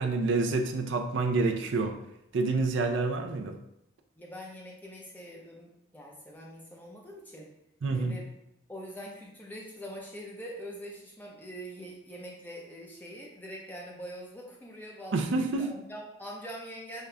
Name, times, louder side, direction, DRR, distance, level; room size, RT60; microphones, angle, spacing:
voice 1, 0.0-2.0 2.3-3.6 7.8-8.2 15.1-15.7, right 3 dB, 75° right, 5 dB, 0.5 m, -28 dB
voice 2, 4.2-7.5 7.9-8.3 8.7-17.1, equal, 10° left, -3 dB, 0.7 m, -44 dB
5.4 x 2.3 x 3.3 m, 0.79 s
head